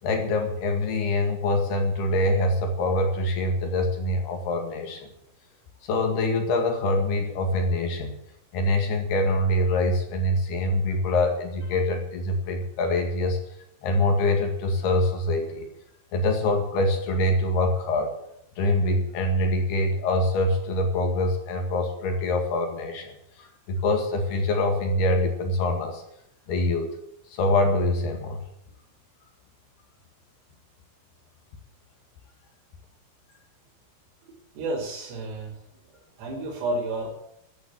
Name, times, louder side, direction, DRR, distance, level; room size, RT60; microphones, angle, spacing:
voice 1, 0.0-5.1 5.8-8.2 8.5-13.4 13.8-15.7 16.1-18.1 18.6-26.0 26.5-27.0 27.3-28.4, left 1 dB, 60° left, 4 dB, 3.7 m, -24 dB
voice 2, 34.2-35.6 36.2-37.1, right 2 dB, 85° right, -7 dB, 6.3 m, -31 dB
15.0 x 10.0 x 9.1 m, 0.76 s
omnidirectional pair, 5.8 m